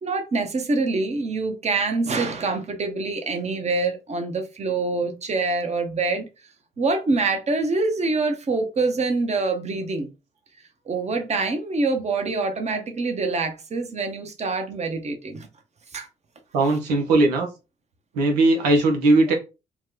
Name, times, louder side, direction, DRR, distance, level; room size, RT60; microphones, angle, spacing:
voice 1, 0.0-6.3 6.8-10.1 10.9-15.5 15.9-16.1, right 3 dB, 35° right, 0.9 m, -25 dB
voice 2, 16.5-17.5 18.1-19.3, right 2 dB, 80° right, 0.9 m, -19 dB
3.0 x 2.2 x 3.6 m
hypercardioid pair, 50°, 20 cm